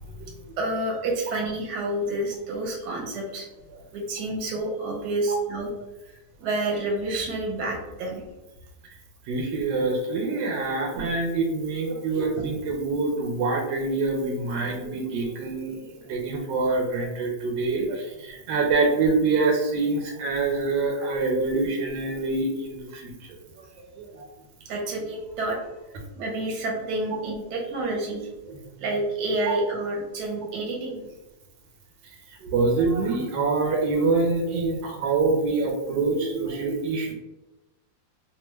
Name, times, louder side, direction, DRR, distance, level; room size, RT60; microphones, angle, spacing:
voice 1, 0.6-3.5 3.9-5.7 6.4-8.2 24.7-25.6 26.2-28.3 28.8-31.0, right 2 dB, 70° right, 0 dB, 1.3 m, -29 dB
voice 2, 9.3-23.6 24.0-24.3 28.5-28.8 32.4-37.1, right 3 dB, 90° right, 0 dB, 1.3 m, -25 dB
3.2 x 2.2 x 3.0 m, 0.98 s
omnidirectional pair, 2.0 m